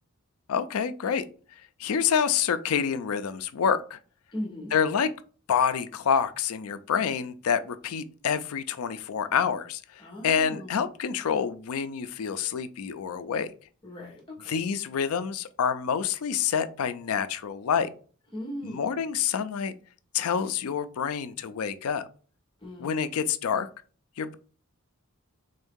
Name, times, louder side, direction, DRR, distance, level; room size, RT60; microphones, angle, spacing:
voice 1, 0.5-1.3 1.8-4.0 4.7-5.1 5.5-13.5 14.5-17.9 18.6-19.7 20.1-22.1 22.8-23.7 24.2-24.3, left 7 dB, 80° left, 12 dB, 0.4 m, -27 dB
voice 2, 4.3-4.7 10.0-10.8 13.8-14.6 18.3-19.0 22.6-23.2, left 1 dB, 25° left, -3 dB, 1.1 m, -38 dB
3.8 x 2.6 x 3.6 m, 0.40 s
head